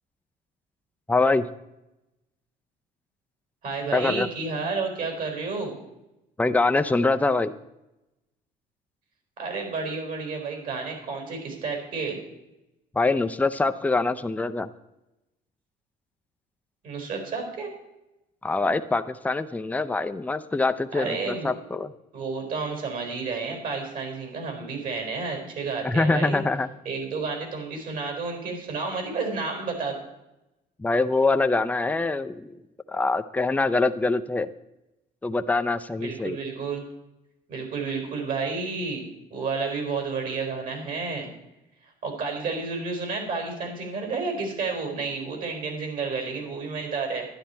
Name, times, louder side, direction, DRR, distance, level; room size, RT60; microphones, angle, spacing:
voice 1, 1.1-1.5 3.9-4.3 6.4-7.5 12.9-14.7 18.4-21.9 25.8-26.7 30.8-32.6 32.9-34.5 35.2-36.4, left 3 dB, 10° left, 9 dB, 0.5 m, -24 dB
voice 2, 3.6-5.8 9.4-12.2 16.8-17.7 20.9-21.5 22.1-26.4 26.8-30.0 36.0-36.8 37.5-41.3 42.0-47.3, right 4 dB, 55° right, 3 dB, 4.6 m, -31 dB
11.5 x 10.5 x 4.4 m, 0.93 s
cardioid pair, 110°, 17 cm